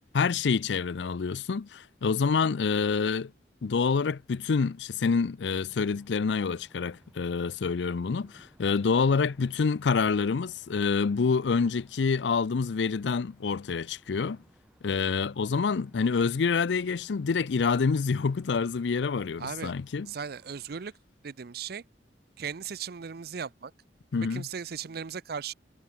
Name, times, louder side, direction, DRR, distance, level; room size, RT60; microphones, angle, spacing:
voice 1, 0.1-3.3 3.6-14.4 14.8-20.1 24.1-24.5, left 5 dB, 85° left, 0.5 m, -27 dB
sound 1, 5.7-20.9, equal, 5° right, 3.1 m, -61 dB
voice 2, 19.4-19.7 20.1-20.9 21.2-21.8 22.4-23.7 24.3-25.5, right 6 dB, 60° right, 0.6 m, -37 dB
head